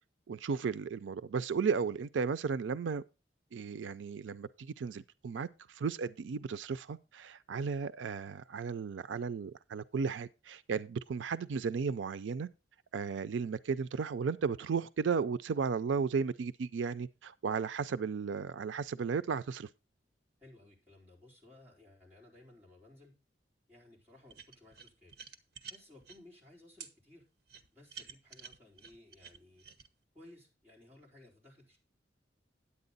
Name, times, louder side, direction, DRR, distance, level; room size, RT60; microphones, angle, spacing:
voice 1, 0.3-3.0 3.5-12.5 12.9-19.7, right 5 dB, 90° right, 0.4 m, -34 dB
voice 2, 20.4-23.1 23.7-25.1 25.7-27.2 27.7-29.6 30.1-31.8, left 1 dB, 10° right, 4.2 m, -58 dB
sound 1, 24.3-26.2 26.8-26.9 27.5-29.9, right 7 dB, 60° right, 1.0 m, -50 dB
9.8 x 8.4 x 4.0 m
head